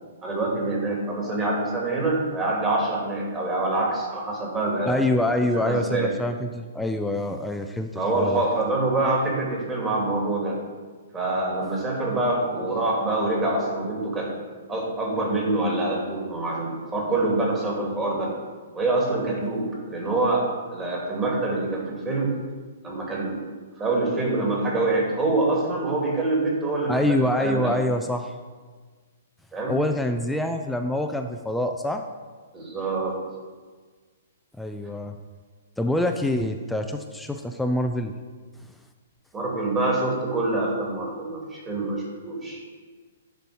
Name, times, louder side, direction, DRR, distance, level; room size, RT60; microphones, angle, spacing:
voice 1, 0.2-5.3 5.6-6.1 8.0-10.6 11.1-14.3 14.7-18.3 18.7-22.4 22.8-23.4 23.8-27.7 29.5-29.8 32.5-33.2 39.3-42.6, right 2 dB, 20° right, -2 dB, 2.4 m, -25 dB
voice 2, 4.9-8.4 26.9-28.3 29.7-32.0 34.6-35.2 35.8-38.1, left 1 dB, 5° left, 5 dB, 0.4 m, -25 dB
10.5 x 4.6 x 4.9 m, 1.5 s
figure-of-eight pair, 120°, 0 cm